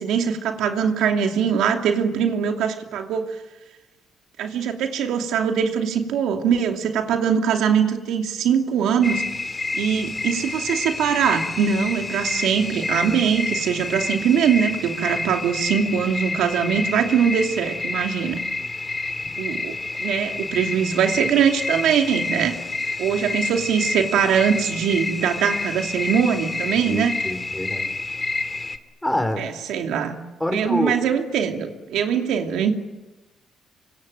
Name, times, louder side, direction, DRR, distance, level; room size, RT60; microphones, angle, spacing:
voice 1, 0.0-3.2 4.4-9.2 9.7-18.4 19.4-22.6 23.0-27.1 29.4-30.2 30.5-32.7, right 7 dB, 85° right, 4 dB, 2.8 m, -22 dB
sound 1, 9.0-28.8, left 3 dB, 25° left, 2.5 m, -29 dB
voice 2, 26.9-27.9 29.0-29.5 30.4-31.0, left 1 dB, 5° left, 8 dB, 4.1 m, -25 dB
25.5 x 24.5 x 9.3 m, 1.1 s
cardioid pair, 90°, 0 cm